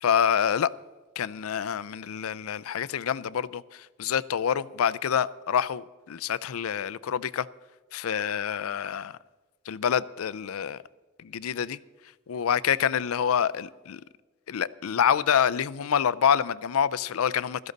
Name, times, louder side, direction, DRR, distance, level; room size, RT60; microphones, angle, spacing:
voice 1, 0.0-0.7 1.2-7.5 7.9-9.2 9.7-10.8 11.2-11.8 12.3-14.0 14.5-17.7, left 8 dB, 80° left, 0.4 m, -27 dB
16.0 x 13.5 x 4.0 m
head